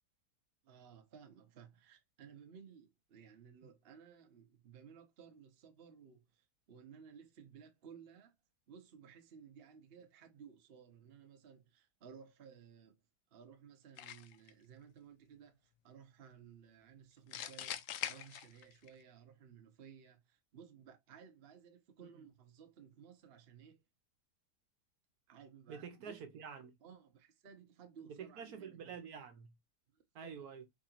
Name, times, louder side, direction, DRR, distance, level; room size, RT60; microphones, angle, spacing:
voice 1, 0.6-8.3 8.7-12.9 13.3-23.8 25.3-26.2 26.8-28.9 29.9-30.5, right 7 dB, 45° right, 0.9 m, -58 dB
sound 1, 14.0-14.5 17.3-18.9, left 11 dB, 70° left, 0.8 m, -43 dB
voice 2, 25.7-26.7 28.1-29.5 30.1-30.7, right 6 dB, 65° right, 1.3 m, -48 dB
4.8 x 4.2 x 2.4 m
omnidirectional pair, 1.8 m